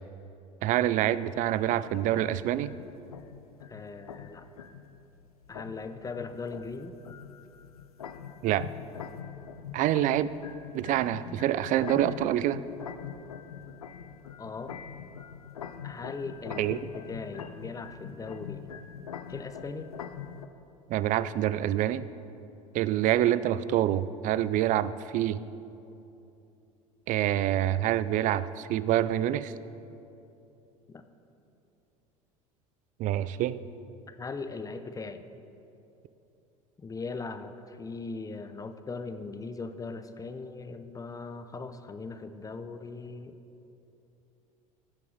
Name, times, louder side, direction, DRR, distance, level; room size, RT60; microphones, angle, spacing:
voice 1, 0.6-2.7 8.4-8.7 9.7-10.3 10.7-12.6 16.6-16.8 20.9-22.1 22.7-25.4 27.1-29.5 33.0-33.6, right 12 dB, 45° right, 16 dB, 0.4 m, -26 dB
sound 1, 1.3-20.5, left 8 dB, 90° left, 0.4 m, -43 dB
voice 2, 3.7-4.4 5.5-6.9 14.4-14.7 15.8-18.7 19.3-19.9 30.9-31.0 34.1-35.2 36.8-43.4, left 4 dB, 20° left, 9 dB, 0.6 m, -39 dB
15.5 x 5.6 x 4.0 m, 2.8 s
hypercardioid pair, 75°, 18 cm